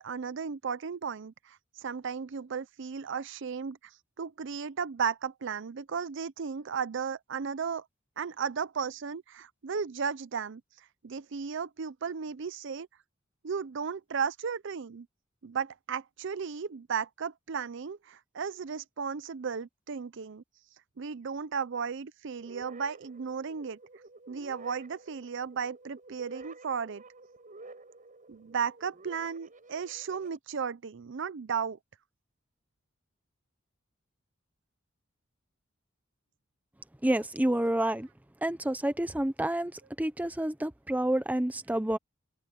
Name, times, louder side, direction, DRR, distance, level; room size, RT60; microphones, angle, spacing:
voice 1, 0.0-3.8 4.2-7.9 8.2-10.6 11.0-12.9 13.4-15.1 15.4-20.4 21.0-23.8 24.3-27.0 28.3-31.8, right 6 dB, 65° right, 0.6 m, -35 dB
sound 1, 22.4-30.4, right 3 dB, 40° right, 6.1 m, -51 dB
voice 2, 37.0-38.1 38.4-42.0, right 1 dB, 10° right, 0.7 m, -29 dB
open air
head